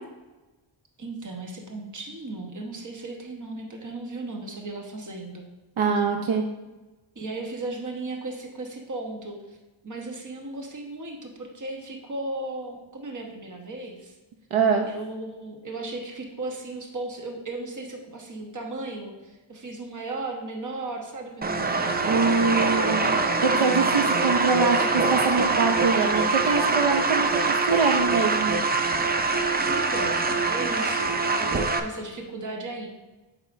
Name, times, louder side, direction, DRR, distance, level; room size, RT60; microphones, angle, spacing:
voice 1, 1.0-5.5 7.1-9.6 9.8-14.1 14.8-23.3 29.6-32.9, right 2 dB, 40° right, 1 dB, 1.0 m, -36 dB
voice 2, 5.8-6.4 14.5-14.9 22.0-23.2 23.4-28.5, right 4 dB, 75° right, 4 dB, 0.7 m, -24 dB
sound 1, 21.4-31.8, right 3 dB, 25° right, 0.3 m, -24 dB
8.0 x 5.2 x 2.5 m, 1.1 s
wide cardioid pair, 125°, 49 cm